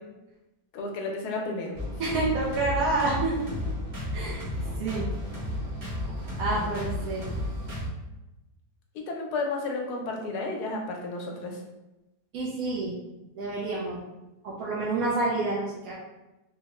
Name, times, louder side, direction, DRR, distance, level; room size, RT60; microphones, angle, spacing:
voice 1, 0.7-1.8 6.4-6.9 9.1-11.6, left 3 dB, 80° left, 1 dB, 1.2 m, -32 dB
sound 1, 1.7-7.9, left 1 dB, 40° right, 0.8 m, -33 dB
voice 2, 2.0-3.3 4.1-4.4 4.8-5.1 6.4-7.2 12.3-12.9 13.4-14.0 14.4-15.9, right 2 dB, 70° right, -5 dB, 1.0 m, -28 dB
3.5 x 2.1 x 3.0 m, 1.0 s
omnidirectional pair, 1.7 m